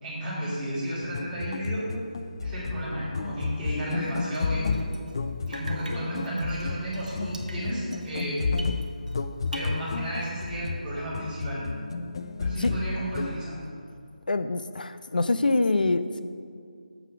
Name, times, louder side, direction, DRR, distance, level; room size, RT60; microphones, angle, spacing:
voice 1, 0.0-1.9 2.4-4.9 5.5-8.5 9.5-11.7 12.4-13.6, right 1 dB, 10° right, -11 dB, 2.4 m, -33 dB
sound 1, 1.0-13.4, left 4 dB, 35° left, 0.4 m, -32 dB
Drip, 4.0-5.2 5.5-9.2 9.5-10.5, right 2 dB, 70° right, 1.3 m, -45 dB
voice 2, 14.3-16.2, left 3 dB, 85° left, 11 dB, 0.6 m, -25 dB
8.6 x 7.1 x 5.7 m, 2.3 s
figure-of-eight pair, 175°, 5 cm